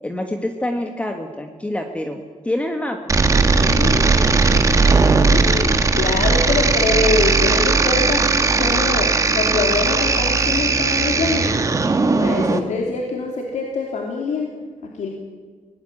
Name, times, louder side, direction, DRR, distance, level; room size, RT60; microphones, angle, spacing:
voice 1, 0.0-3.1, left 1 dB, 10° left, 5 dB, 1.5 m, -26 dB
sound 1, 3.1-12.6, right 4 dB, 25° right, 1.5 m, -17 dB
voice 2, 3.6-11.6 12.1-14.5 14.8-15.1, left 4 dB, 75° left, 1 dB, 3.2 m, -25 dB
24.5 x 19.0 x 8.7 m, 1.5 s
wide cardioid pair, 170°, 12 cm